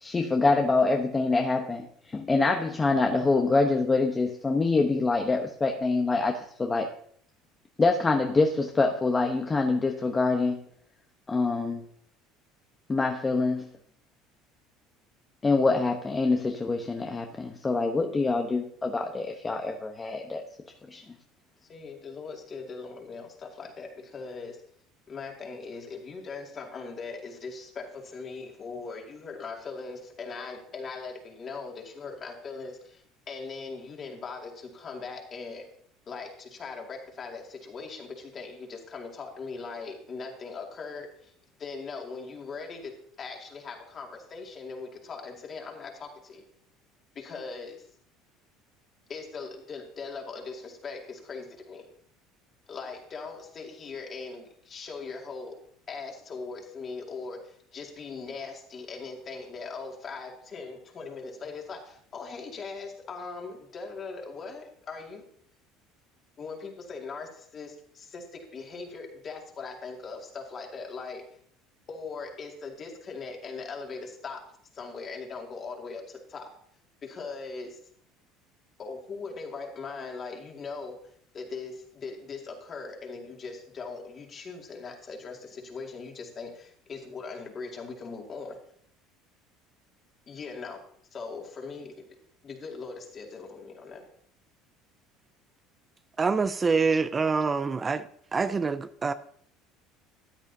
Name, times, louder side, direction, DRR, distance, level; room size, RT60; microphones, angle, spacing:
voice 1, 0.0-6.9 7.8-10.6 11.3-11.8 12.9-13.7 15.4-20.4 20.9-21.0, left 3 dB, 20° left, 0.9 m, -25 dB
voice 2, 21.7-24.6 25.1-35.7 36.1-41.3 41.6-46.4 47.1-47.9 49.1-51.9 52.7-55.6 55.9-65.2 66.4-71.2 71.9-74.4 74.7-76.5 77.0-77.8 78.8-81.0 81.3-88.6 90.3-90.8 91.1-92.1 92.4-94.0, left 4 dB, 40° left, 2.4 m, -40 dB
voice 3, 96.2-98.1 98.3-99.1, right 4 dB, 25° right, 0.4 m, -25 dB
13.5 x 9.0 x 2.8 m
supercardioid pair, 95°, 0 cm